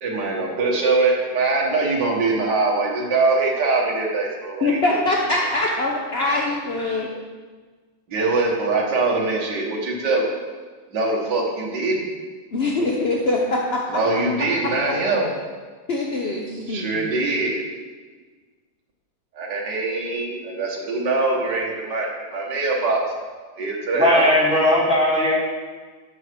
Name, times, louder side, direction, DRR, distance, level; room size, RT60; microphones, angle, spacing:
voice 1, 0.0-5.0 8.1-10.3 10.9-12.1 13.9-15.3 16.7-17.6 19.3-23.0 23.6-24.2, right 3 dB, 55° right, -1 dB, 2.2 m, -23 dB
voice 2, 4.6-7.1 12.5-13.8 15.9-17.1, left 2 dB, 60° left, -1 dB, 0.6 m, -23 dB
voice 3, 24.0-25.3, left 1 dB, 5° right, -6 dB, 2.4 m, -18 dB
12.5 x 6.3 x 4.6 m, 1.4 s
omnidirectional pair, 2.4 m